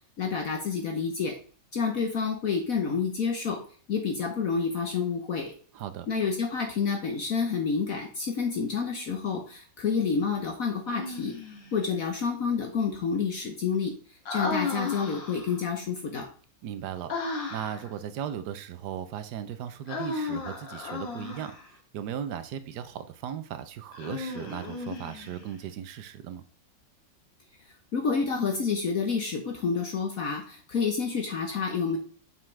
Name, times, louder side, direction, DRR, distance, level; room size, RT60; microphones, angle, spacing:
voice 1, 0.2-1.4 1.7-3.6 3.9-5.5 6.1-11.3 11.7-13.9 14.3-16.3 27.9-32.0, left 5 dB, 55° left, 3 dB, 1.3 m, -29 dB
voice 2, 5.7-6.1 16.6-17.1 17.5-26.4, right 9 dB, 70° right, 11 dB, 1.3 m, -37 dB
Human voice, 10.9-11.8 14.3-15.6 17.1-17.9 19.9-21.7 23.9-25.5, left 3 dB, 85° left, 2.3 m, -34 dB
7.5 x 6.1 x 3.3 m, 0.43 s
omnidirectional pair, 1.9 m